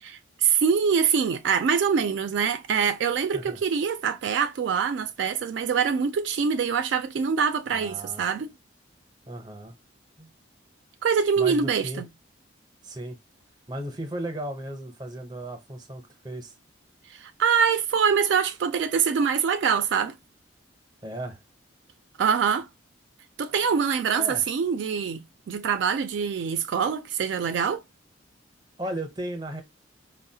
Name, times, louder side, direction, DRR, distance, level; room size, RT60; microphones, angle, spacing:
voice 1, 0.0-8.5 11.0-12.1 17.1-20.2 22.2-22.7 23.4-25.2 25.5-27.8, right 6 dB, 70° right, 0.3 m, -24 dB
voice 2, 7.7-8.3 9.3-9.8 10.2-10.3 11.4-12.0 12.8-13.2 13.7-16.5 21.0-21.4 23.5-23.7 24.2-24.4 28.8-29.6, right 1 dB, 20° right, 0.6 m, -35 dB
4.6 x 2.0 x 2.6 m
head